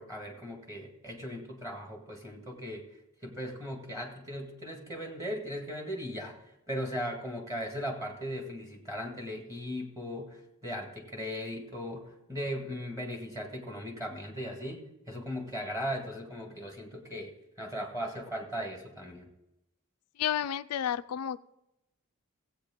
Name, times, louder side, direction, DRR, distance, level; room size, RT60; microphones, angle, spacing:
voice 1, 0.0-2.9 3.2-6.4 6.7-19.3, equal, 15° right, 2 dB, 1.8 m, -38 dB
voice 2, 20.2-21.4, left 10 dB, 85° left, 13 dB, 0.4 m, -31 dB
16.5 x 8.3 x 3.7 m, 0.91 s
head